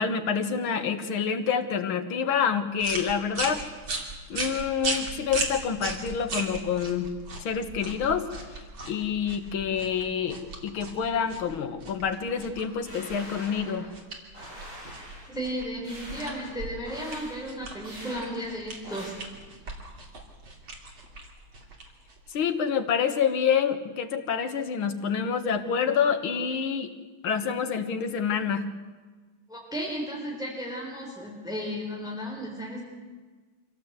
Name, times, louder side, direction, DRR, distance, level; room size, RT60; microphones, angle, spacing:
voice 1, 0.0-3.6 4.3-7.1 7.4-8.3 8.9-13.9 22.3-26.9 27.2-28.7, left 7 dB, 85° left, 7 dB, 2.2 m, -27 dB
sound 1, 2.8-22.4, right 2 dB, 75° right, 3.6 m, -38 dB
sound 2, 12.8-13.9 14.3-15.3 15.8-16.5 16.8-17.3 17.8-18.2 18.8-19.1, equal, 35° right, 8.2 m, -44 dB
voice 2, 15.3-19.1 29.5-32.8, equal, ahead, -3 dB, 3.8 m, -34 dB
25.5 x 16.0 x 8.1 m, 1.4 s
omnidirectional pair, 2.2 m